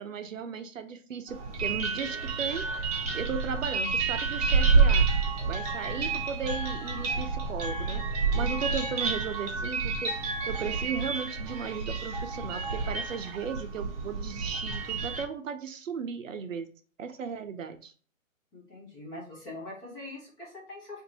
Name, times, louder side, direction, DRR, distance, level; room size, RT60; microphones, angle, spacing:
voice 1, 0.0-2.7 3.1-5.1 5.5-16.7 17.0-17.9, right 6 dB, 70° right, 9 dB, 0.6 m, -36 dB
sound 1, 1.3-15.2, right 4 dB, 30° right, 0.8 m, -29 dB
voice 2, 18.5-21.0, left 2 dB, 10° left, -5 dB, 0.5 m, -43 dB
2.7 x 2.5 x 4.0 m, 0.41 s
hypercardioid pair, 135°, 40 cm